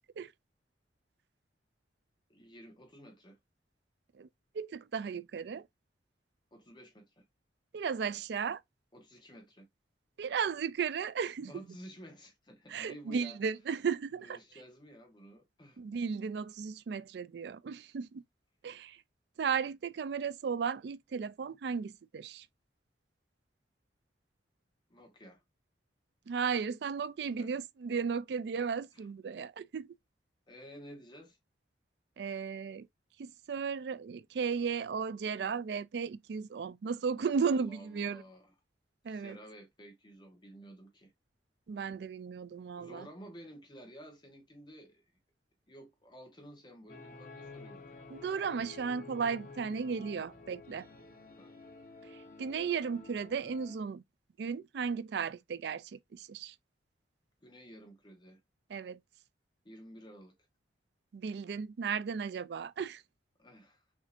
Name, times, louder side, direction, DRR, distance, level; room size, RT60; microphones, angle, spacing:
voice 1, 2.3-3.4 6.5-7.2 8.9-9.7 11.5-13.4 14.2-15.8 24.9-25.4 27.3-27.6 28.9-29.1 30.5-31.4 37.4-38.5 39.1-41.1 42.8-45.0 45.7-47.8 51.4-51.5 57.4-58.4 59.6-60.3 63.4-63.8, equal, 25° left, 0.9 m, -52 dB
voice 2, 4.5-5.7 7.7-8.6 10.2-11.5 12.7-14.4 15.8-18.2 18.6-19.0 19.4-22.5 26.3-29.9 32.2-32.9 33.2-38.2 39.0-39.4 41.7-43.1 48.1-50.9 52.1-54.0 54.4-56.5 58.7-59.0 61.1-63.0, right 6 dB, 60° right, 0.3 m, -35 dB
sound 1, 46.9-53.8, left 3 dB, 45° left, 1.1 m, -51 dB
6.0 x 2.7 x 2.4 m
head